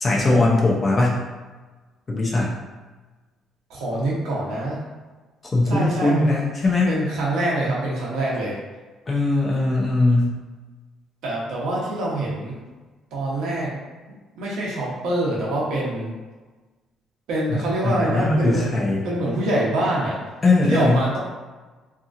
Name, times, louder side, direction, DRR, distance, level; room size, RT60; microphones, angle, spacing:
voice 1, 0.0-1.2 2.1-2.5 5.5-6.9 9.1-10.3 17.5-19.0 20.4-21.0, left 2 dB, 25° left, -3 dB, 0.5 m, -20 dB
voice 2, 3.7-4.8 5.6-6.3 6.9-8.6 11.2-12.6 13.1-13.7 14.4-16.1 17.3-20.2 20.7-21.2, right 1 dB, 85° right, -5 dB, 0.9 m, -25 dB
2.8 x 2.6 x 2.4 m, 1.3 s
cardioid pair, 125°, 0 cm